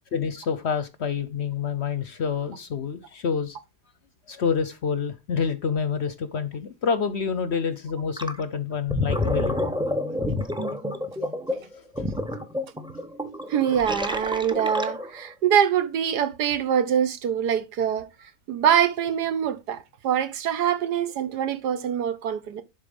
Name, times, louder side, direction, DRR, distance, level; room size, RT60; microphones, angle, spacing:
voice 1, 0.1-3.6 4.3-9.6 11.7-12.1, left 6 dB, 55° left, 0.8 m, -28 dB
Gurgling, 8.2-8.4 8.7-15.2, left 1 dB, 5° right, 0.5 m, -29 dB
voice 2, 13.5-18.1 18.5-22.6, right 9 dB, 85° right, 1.5 m, -24 dB
11.0 x 4.0 x 5.2 m
omnidirectional pair, 1.7 m